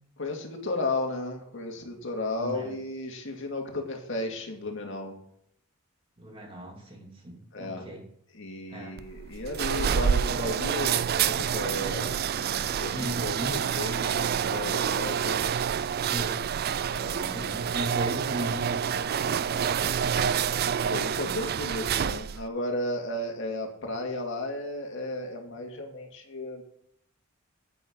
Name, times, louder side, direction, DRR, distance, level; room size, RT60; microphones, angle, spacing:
voice 1, 0.2-5.1 7.5-7.9 8.3-15.4 16.9-17.9 20.9-26.6, left 2 dB, 65° left, 2 dB, 2.4 m, -34 dB
voice 2, 2.4-2.7 6.2-8.1 8.7-9.0 12.9-13.6 16.0-16.5 17.0-19.6 20.0-20.4, equal, 25° right, 0 dB, 2.6 m, -38 dB
sound 1, 9.0-22.5, right 8 dB, 50° right, 0.4 m, -28 dB
11.0 x 9.4 x 4.0 m, 0.69 s
head